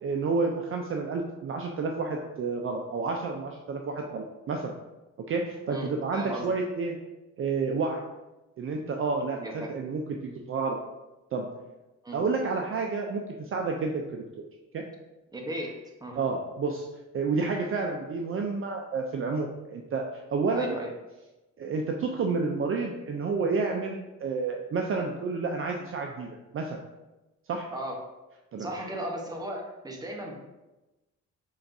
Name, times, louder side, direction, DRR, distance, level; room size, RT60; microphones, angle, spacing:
voice 1, 0.0-4.7 5.3-7.0 7.4-8.0 8.6-10.8 11.3-11.5 12.1-14.2 14.7-14.8 16.2-16.9 17.1-20.7 21.6-26.3 26.5-26.8 27.5-27.7 28.5-28.7, right 4 dB, 45° right, 2 dB, 0.5 m, -30 dB
voice 2, 5.6-6.5 9.3-9.7 12.0-12.2 15.3-15.7 16.0-16.2 20.5-20.9 27.7-28.0 28.6-30.3, right 1 dB, 15° right, 0 dB, 0.9 m, -36 dB
5.6 x 3.4 x 2.6 m, 1.1 s
cardioid pair, 90°, 30 cm